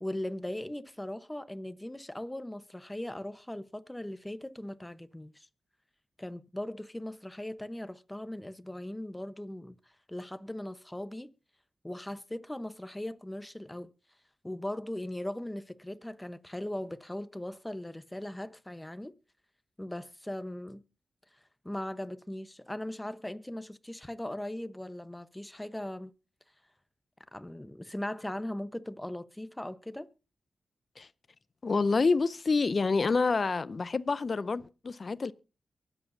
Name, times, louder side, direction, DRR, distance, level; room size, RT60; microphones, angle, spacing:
voice 1, 0.0-5.5 6.2-9.8 10.1-11.3 11.8-13.9 14.4-19.1 19.8-20.8 21.6-26.1 27.3-30.1, left 1 dB, 15° left, 1.0 m, -39 dB
voice 2, 31.6-35.3, left 4 dB, 55° left, 0.5 m, -27 dB
23.5 x 8.1 x 2.7 m
supercardioid pair, 40°, 0 cm